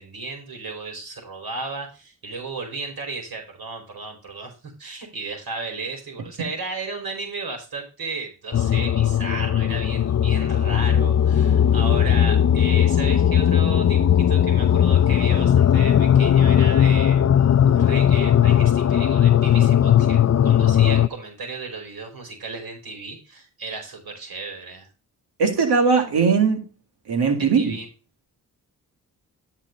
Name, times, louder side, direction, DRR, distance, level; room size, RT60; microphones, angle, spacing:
voice 1, 0.0-24.9 27.4-27.9, right 3 dB, 65° right, 2 dB, 4.9 m, -34 dB
sound 1, 8.5-21.1, left 9 dB, 40° left, 0.6 m, -18 dB
voice 2, 25.4-26.6 27.1-27.7, right 5 dB, 85° right, 3 dB, 2.1 m, -19 dB
13.5 x 4.7 x 4.0 m, 0.33 s
supercardioid pair, 45°, 39 cm